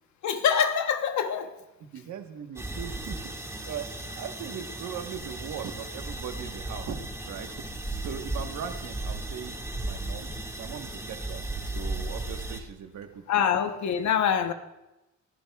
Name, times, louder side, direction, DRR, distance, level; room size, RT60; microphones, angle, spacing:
voice 1, 0.2-1.5 13.3-14.5, left 8 dB, 70° left, 1.0 m, -25 dB
voice 2, 1.9-3.9 4.1-7.5 8.0-9.6 9.8-13.2, right 8 dB, 70° right, 1.3 m, -39 dB
sound 1, 2.6-12.6, right 2 dB, 10° right, 1.8 m, -36 dB
23.5 x 10.5 x 2.3 m
cardioid pair, 90°, 30 cm